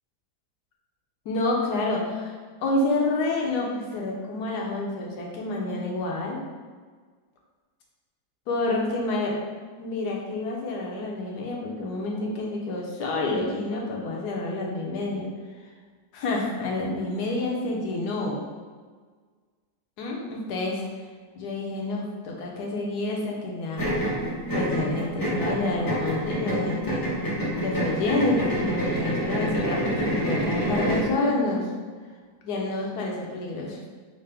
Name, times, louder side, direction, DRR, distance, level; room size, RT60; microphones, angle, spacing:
voice 1, 1.2-2.4 2.6-6.4 8.5-9.3 9.8-15.3 16.1-18.4 20.0-20.8 21.4-24.2 24.5-27.1 27.6-31.7 32.4-33.8, left 2 dB, 65° left, -1 dB, 1.2 m, -28 dB
sound 1, 23.8-31.1, equal, 35° left, 0.3 m, -27 dB
5.7 x 2.1 x 3.4 m, 1.5 s
omnidirectional pair, 2.0 m